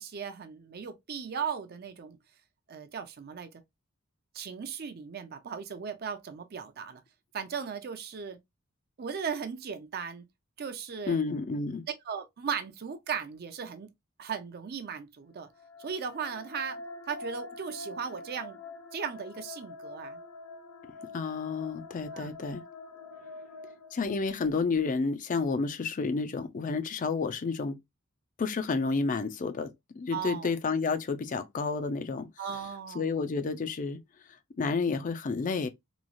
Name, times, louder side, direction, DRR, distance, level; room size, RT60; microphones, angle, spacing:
voice 1, 0.0-2.2 2.7-3.5 4.3-7.0 7.3-8.4 9.0-10.3 10.6-11.2 12.1-13.9 14.2-15.5 15.8-18.6 18.9-20.2 22.1-22.4 30.1-30.5 32.4-33.1, right 6 dB, 45° right, 0.4 m, -37 dB
voice 2, 11.1-11.8 21.1-22.6 23.9-27.8 28.4-29.7 30.0-32.3 32.9-34.0 34.6-35.7, left 4 dB, 40° left, 0.4 m, -30 dB
sound 1, 15.4-24.6, left 2 dB, 85° left, 0.6 m, -45 dB
3.0 x 2.3 x 2.5 m
head